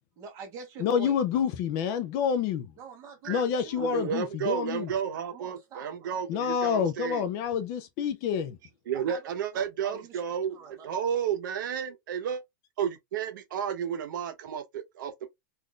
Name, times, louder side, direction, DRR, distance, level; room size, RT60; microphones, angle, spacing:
voice 1, 0.2-1.4 2.8-4.2 5.3-6.2 8.9-9.2 9.5-11.1, right 5 dB, 30° right, 1.1 m, -45 dB
voice 2, 0.8-2.7 3.3-4.9 6.3-8.6, left 7 dB, 30° left, 0.4 m, -28 dB
voice 3, 3.8-7.2 8.9-10.6 10.8-12.4 12.8-15.3, right 8 dB, 70° right, 0.8 m, -32 dB
3.5 x 2.5 x 2.3 m
supercardioid pair, 165°, 11 cm